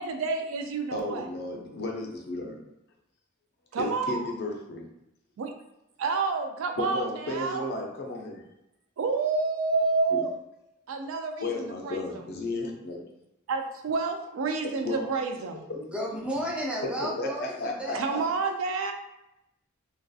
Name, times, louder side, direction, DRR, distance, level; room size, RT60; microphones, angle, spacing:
voice 1, 0.0-1.3 3.7-4.3 5.4-5.5 6.0-7.7 9.0-10.3 10.9-12.3 13.5-15.7 17.9-18.9, right 4 dB, 70° right, 5 dB, 0.3 m, -29 dB
voice 2, 0.9-2.6 3.8-4.8 6.8-8.4 10.1-10.2 11.4-13.0 14.9-15.1 15.7-15.8 17.2-18.2, left 2 dB, 50° left, 0 dB, 0.4 m, -33 dB
voice 3, 15.8-18.0, equal, 5° right, -3 dB, 0.4 m, -33 dB
2.5 x 2.3 x 2.3 m, 0.88 s
head